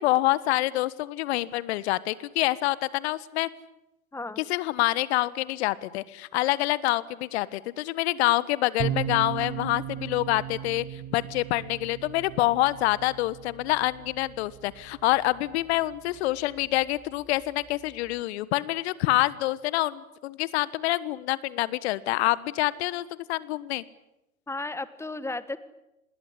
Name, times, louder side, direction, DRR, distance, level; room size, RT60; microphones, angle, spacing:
voice 1, 0.0-3.5 4.5-23.8, left 17 dB, 50° left, 19 dB, 1.4 m, -26 dB
voice 2, 4.1-4.4 24.5-25.6, left 2 dB, 5° left, 15 dB, 1.4 m, -34 dB
sound 1, 8.8-18.2, right 11 dB, 30° right, 1.9 m, -38 dB
26.5 x 20.5 x 9.8 m, 0.91 s
figure-of-eight pair, 95°, 41 cm